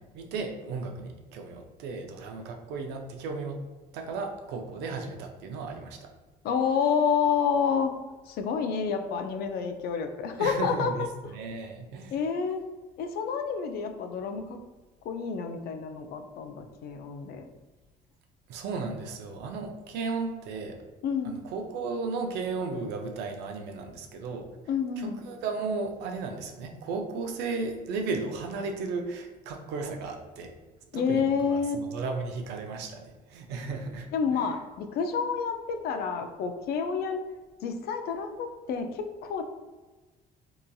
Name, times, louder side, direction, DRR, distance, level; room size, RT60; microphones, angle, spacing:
voice 1, 0.1-3.6 3.9-6.1 10.4-12.2 18.5-20.8 21.4-24.5 25.0-30.5 30.9-34.5, right 4 dB, 85° right, 4 dB, 0.5 m, -35 dB
voice 2, 6.4-7.9 8.3-11.1 12.1-12.6 13.0-14.6 15.1-17.5 21.0-21.4 24.7-25.2 30.9-31.8 34.1-37.2 37.6-39.4, left 6 dB, 65° left, 6 dB, 0.4 m, -29 dB
2.8 x 2.5 x 2.2 m, 1.2 s
cardioid pair, 110°, 17 cm